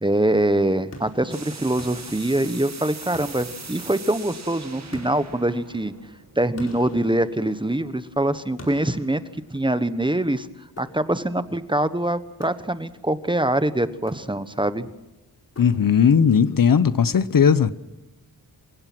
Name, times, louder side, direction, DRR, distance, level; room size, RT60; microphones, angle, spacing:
voice 1, 0.0-5.9 6.4-9.2 9.5-10.5 10.8-14.9, right 1 dB, 10° right, 13 dB, 1.2 m, -24 dB
sound 1, 0.9-2.7 3.1-4.3 4.9-7.9 8.6-10.0 10.8-11.4 12.4-13.1 13.9-14.7 15.5-16.2, left 1 dB, 40° left, 4.7 m, -45 dB
sound 2, 1.3-7.0, right 4 dB, 45° right, 2.0 m, -41 dB
voice 2, 15.6-17.7, left 7 dB, 60° left, 15 dB, 0.9 m, -17 dB
27.5 x 17.0 x 6.2 m, 1.0 s
wide cardioid pair, 90°, 38 cm